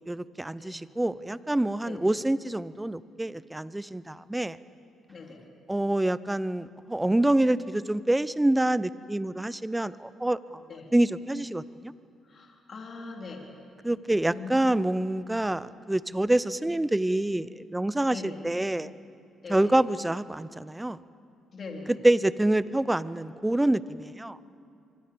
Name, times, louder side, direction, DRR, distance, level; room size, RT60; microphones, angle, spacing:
voice 1, 0.1-4.6 5.7-10.6 10.9-11.9 13.8-18.9 19.5-21.0 21.9-24.4, right 1 dB, 10° right, 17 dB, 0.7 m, -26 dB
voice 2, 5.1-5.4 10.7-10.9 12.2-13.5 14.3-14.8 18.1-18.4 19.4-19.7 21.5-22.0, left 3 dB, 45° left, 0 dB, 4.0 m, -41 dB
25.0 x 24.5 x 7.1 m, 2.4 s
cardioid pair, 90°, 0 cm